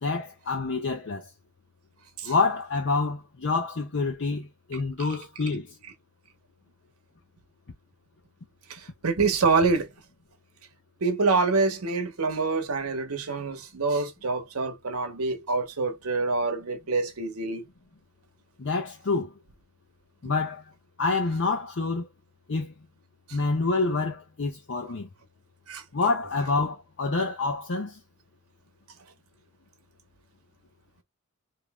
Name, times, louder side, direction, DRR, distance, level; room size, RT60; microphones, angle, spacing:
voice 1, 0.0-1.3 2.2-5.7 18.6-19.3 20.2-20.6 21.0-22.1 22.5-22.7 23.3-25.1 25.9-28.0, left 3 dB, 60° left, 0.7 m, -27 dB
voice 2, 8.7-9.9 11.0-17.6 25.7-25.8, right 4 dB, 85° right, 0.9 m, -26 dB
3.0 x 2.7 x 3.4 m
head